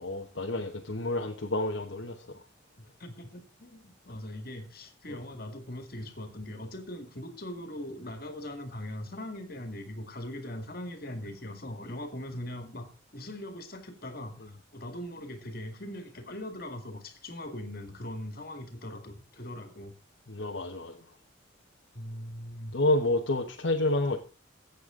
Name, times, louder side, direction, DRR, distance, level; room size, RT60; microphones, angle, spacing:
voice 1, 0.0-2.2 20.3-21.0 22.7-24.2, left 2 dB, 65° left, 1.1 m, -29 dB
voice 2, 3.0-19.9 21.9-22.8, left 1 dB, 50° left, 2.0 m, -40 dB
13.5 x 8.3 x 3.7 m
head